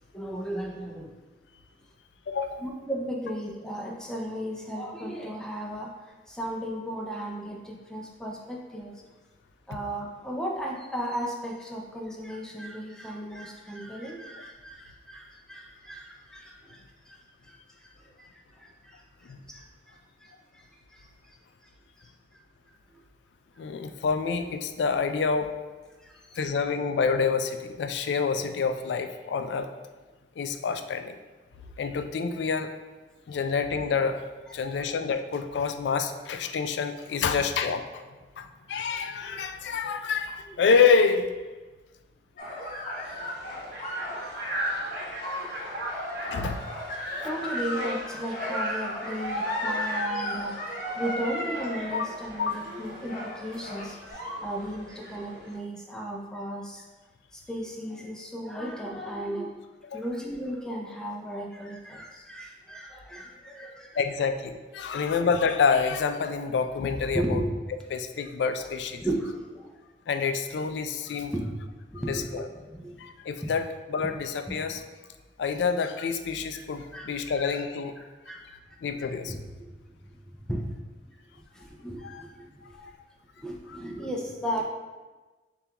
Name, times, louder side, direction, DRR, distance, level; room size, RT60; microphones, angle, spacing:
voice 1, 0.1-1.1 2.6-9.0 9.7-21.4 21.6-21.7 22.0-22.4 22.9-23.0 26.0-26.5 39.2-39.4 39.6-39.9 43.5-43.8 46.9-50.5 51.0-56.8 57.3-59.5 59.9-64.0 64.9-65.0 67.1-67.5 69.0-69.7 71.3-71.4 71.9-73.0 74.5-74.6 76.9-77.1 78.0-79.4 79.7-79.8 80.1-80.2 80.5-80.8 81.3-82.9 83.4-84.6, right 1 dB, 5° left, -1 dB, 0.4 m, -36 dB
voice 2, 2.3-2.6 19.2-19.4 23.6-25.5 26.4-29.7 30.4-31.2 31.8-32.7 33.3-34.2 34.5-38.0 38.4-41.5 42.7-43.0 46.2-46.6 51.9-52.1 52.4-52.5 59.9-60.0 64.0-67.4 67.9-69.0 70.1-71.3 72.1-72.5 73.0-74.8 75.4-78.0 78.8-79.4 82.0-82.2 82.7-82.9 83.7-83.8, left 5 dB, 75° left, 8 dB, 0.3 m, -27 dB
sound 1, 42.4-54.0, left 1 dB, 50° left, 0.8 m, -35 dB
sound 2, 43.0-55.6, right 1 dB, 70° right, 0.9 m, -39 dB
6.8 x 2.4 x 2.9 m, 1.2 s
head